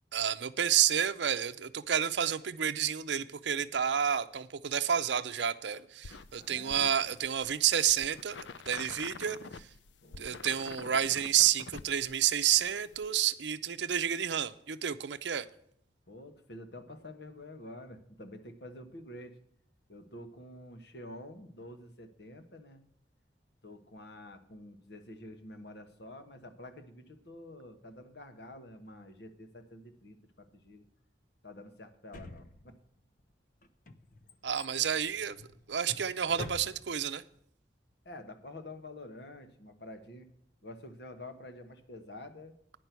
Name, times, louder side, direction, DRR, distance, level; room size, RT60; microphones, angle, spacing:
voice 1, 0.1-9.7 10.2-15.5 34.4-35.4 35.7-37.2, right 9 dB, 75° right, 0.6 m, -30 dB
sound 1, 6.0-13.1, left 4 dB, 80° left, 0.5 m, -47 dB
voice 2, 6.4-6.8 10.0-10.5 16.1-19.4 19.9-22.8 23.6-30.8 31.4-32.8 38.0-40.3 40.6-42.5, left 1 dB, 65° left, 1.3 m, -48 dB
Drawer open or close, 32.1-33.0 33.6-37.1 37.4-37.5, left 2 dB, 50° left, 0.7 m, -46 dB
9.8 x 6.0 x 8.1 m
head